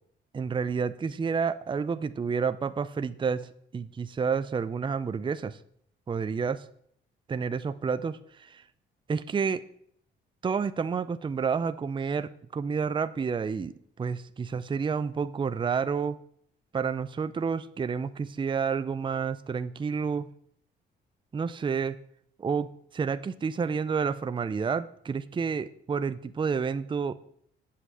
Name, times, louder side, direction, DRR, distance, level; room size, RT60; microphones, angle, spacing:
voice 1, 0.3-5.6 6.1-6.6 7.3-8.6 9.1-9.6 10.4-13.7 14.0-16.2 16.7-20.3 21.3-22.0 22.4-22.7 22.9-27.1, right 5 dB, 25° right, 13 dB, 0.5 m, -29 dB
8.2 x 5.7 x 7.5 m, 0.66 s
cardioid pair, 90°, 20 cm